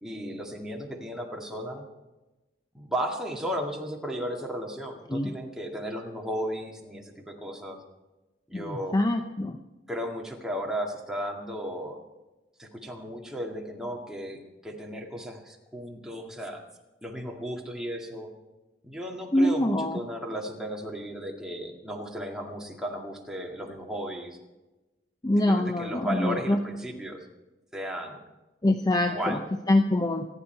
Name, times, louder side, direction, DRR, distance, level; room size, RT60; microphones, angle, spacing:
voice 1, 0.0-1.8 2.7-7.8 8.5-9.0 9.9-12.0 12.6-16.6 17.0-18.3 18.8-24.4 25.4-27.3 27.7-28.2 29.0-29.4, equal, 5° right, -1 dB, 2.1 m, -35 dB
voice 2, 8.5-9.6 19.3-20.0 25.2-26.6 28.6-29.4 29.7-30.3, left 1 dB, 20° left, 5 dB, 0.7 m, -24 dB
27.0 x 10.0 x 4.5 m, 1.1 s
head